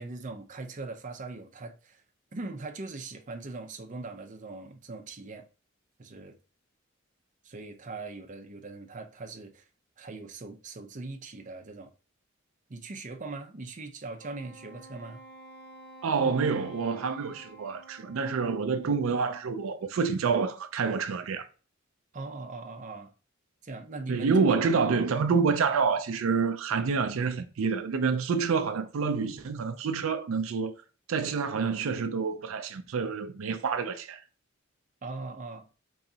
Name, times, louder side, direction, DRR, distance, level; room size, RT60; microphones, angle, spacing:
voice 1, 0.0-2.0 2.3-5.5 6.0-6.4 7.4-9.6 10.0-11.9 12.7-15.2 22.1-23.1 23.6-24.3 35.0-35.7, right 3 dB, 40° right, 0.6 m, -40 dB
Wind instrument woodwind instrument, 14.2-18.8, right 2 dB, 55° left, 0.7 m, -50 dB
voice 2, 16.0-21.5 24.1-30.7 31.1-34.2, right 5 dB, 85° right, 0.4 m, -27 dB
3.8 x 3.1 x 2.7 m
head